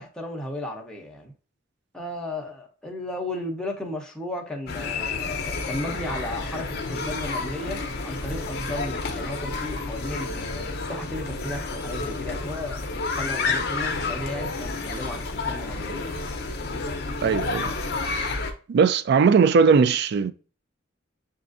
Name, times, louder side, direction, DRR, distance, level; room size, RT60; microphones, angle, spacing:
voice 1, 0.0-1.3 1.9-12.9 13.2-16.2 17.6-17.7, left 1 dB, 5° left, 0.7 m, -34 dB
sound 1, 4.7-18.5, left 3 dB, 50° left, 0.7 m, -30 dB
voice 2, 17.2-17.7 18.7-20.3, right 5 dB, 55° right, 0.3 m, -19 dB
7.0 x 2.5 x 2.5 m
head